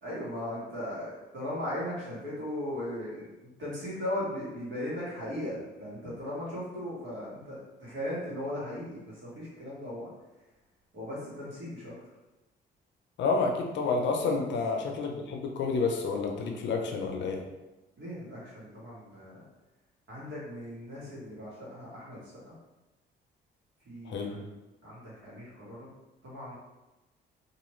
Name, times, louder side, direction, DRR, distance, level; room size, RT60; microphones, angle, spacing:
voice 1, 0.0-3.3 3.6-10.1 10.9-11.9 14.4-14.5 18.0-19.5 20.1-22.5 23.8-24.5 24.8-25.9 26.2-26.6, left 1 dB, 70° right, -7 dB, 1.4 m, -38 dB
voice 2, 13.2-17.4 24.1-24.3, left 4 dB, 65° left, 2 dB, 0.5 m, -29 dB
2.5 x 2.4 x 3.0 m, 1.0 s
cardioid pair, 90°, 20 cm